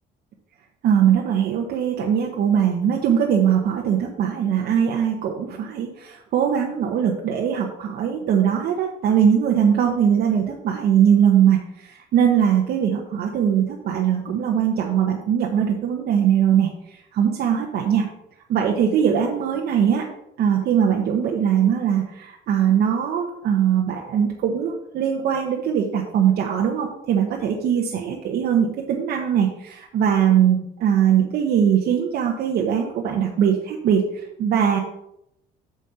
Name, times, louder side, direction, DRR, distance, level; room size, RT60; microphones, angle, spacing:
voice 1, 0.8-16.7 17.1-18.1 18.5-20.0 20.4-34.0 34.4-34.8, right 8 dB, 70° right, 0 dB, 1.1 m, -21 dB
7.5 x 6.3 x 4.2 m, 0.79 s
cardioid pair, 110°, 17 cm